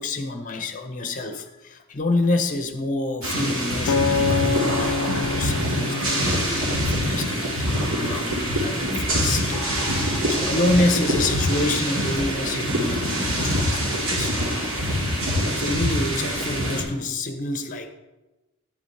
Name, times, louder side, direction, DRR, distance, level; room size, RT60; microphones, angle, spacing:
voice 1, 0.0-14.3 15.5-17.9, left 2 dB, 35° left, 7 dB, 0.8 m, -28 dB
sound 1, 3.2-16.8, equal, 65° right, 2.1 m, -24 dB
Acoustic guitar, 3.9-8.2 8.8-9.1, left 4 dB, 80° left, 0.4 m, -27 dB
9.7 x 9.0 x 3.3 m, 1.1 s
head